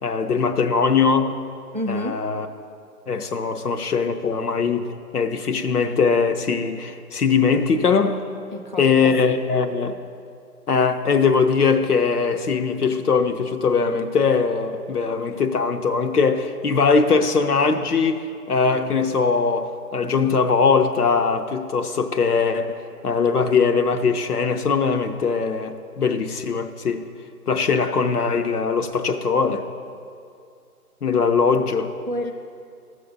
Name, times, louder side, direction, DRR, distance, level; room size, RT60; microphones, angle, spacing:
voice 1, 0.0-1.4 1.9-2.5 3.1-4.9 5.1-8.2 8.8-9.9 10.7-27.0 27.5-29.7 31.0-31.9, left 5 dB, 75° left, 7 dB, 0.8 m, -21 dB
voice 2, 1.7-2.1 8.5-9.4 9.9-10.0 32.1-32.3, left 1 dB, 35° right, 3 dB, 0.4 m, -29 dB
13.0 x 6.7 x 4.0 m, 2.4 s
figure-of-eight pair, 150°, 46 cm